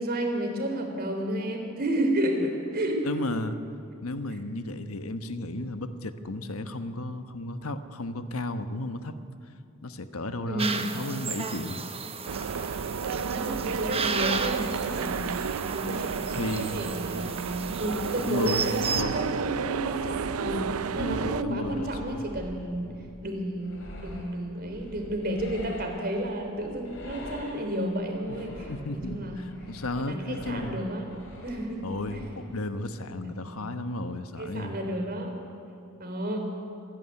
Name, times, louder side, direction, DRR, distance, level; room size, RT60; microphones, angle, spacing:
voice 1, 0.0-3.1 10.5-10.9 13.2-15.3 15.7-20.6 20.9-22.9 23.2-28.5 28.9-29.5 30.0-31.1 31.4-31.8 32.1-32.2 33.2-33.3 34.4-35.3 36.0-36.5, right 1 dB, 45° right, 4 dB, 3.4 m, -31 dB
voice 2, 3.0-3.5 4.0-9.1 9.8-11.8 16.4-16.8 18.2-19.2 21.0-22.3 22.8-23.0 28.7-30.9 31.8-34.8, left 2 dB, 85° left, 9 dB, 1.2 m, -34 dB
sound 1, 10.6-19.0, right 5 dB, 30° right, 1.1 m, -34 dB
sound 2, 12.3-21.4, right 6 dB, 90° right, 0.5 m, -32 dB
sound 3, 20.4-32.6, left 1 dB, 60° left, 4.3 m, -45 dB
27.0 x 11.5 x 9.8 m, 2.6 s
head